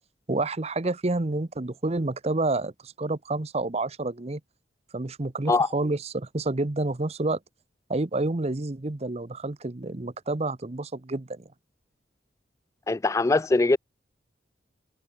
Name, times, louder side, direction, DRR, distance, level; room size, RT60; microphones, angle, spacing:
voice 1, 0.3-4.4 4.9-7.4 7.9-11.5, right 2 dB, 35° right, 0.8 m, -29 dB
voice 2, 12.9-13.8, left 3 dB, 15° left, 0.3 m, -21 dB
head